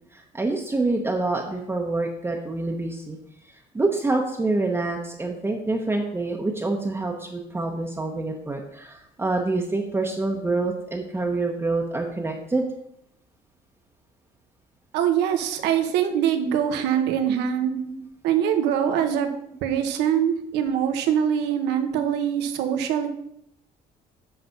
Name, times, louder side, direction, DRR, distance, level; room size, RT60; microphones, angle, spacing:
voice 1, 0.1-3.2 3.4-12.7 17.7-18.0 21.9-22.2, right 2 dB, 15° right, 0 dB, 0.9 m, -27 dB
voice 2, 14.9-17.8 18.2-19.3 19.6-23.1, right 9 dB, 90° right, 6 dB, 1.1 m, -23 dB
8.1 x 4.1 x 5.8 m, 0.74 s
cardioid pair, 110°, 17 cm